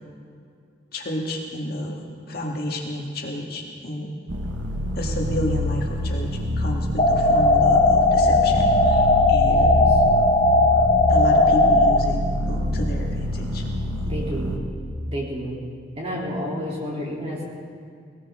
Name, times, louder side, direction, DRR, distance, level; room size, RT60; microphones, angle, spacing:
voice 1, 0.9-2.0 2.3-4.1 4.9-9.8 11.1-12.2 12.5-13.7, left 1 dB, 50° left, -1 dB, 1.9 m, -30 dB
sound 1, 4.3-14.6, left 1 dB, 75° right, 1.4 m, -26 dB
sound 2, 7.0-12.0, left 2 dB, 35° left, 1.0 m, -17 dB
voice 2, 9.5-10.0 14.0-14.6 15.1-15.6 15.9-17.4, equal, 30° right, -5 dB, 3.4 m, -30 dB
19.5 x 19.0 x 3.8 m, 2.3 s
head